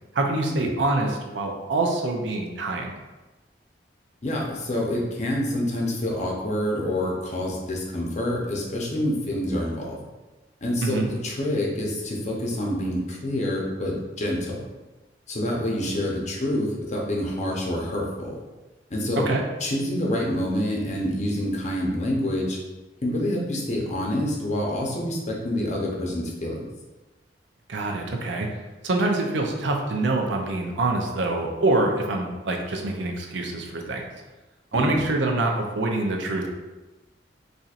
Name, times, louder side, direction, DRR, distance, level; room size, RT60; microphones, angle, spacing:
voice 1, 0.1-2.9 10.8-11.1 19.2-19.4 27.7-28.5 28.8-34.1 34.7-36.5, right 2 dB, 80° right, 2 dB, 0.5 m, -25 dB
voice 2, 4.2-10.0 10.6-14.6 15.3-18.4 18.9-19.3 19.6-22.6 23.0-26.6 34.7-35.0, left 1 dB, 40° left, -2 dB, 0.7 m, -27 dB
4.2 x 2.7 x 2.4 m, 1.1 s
head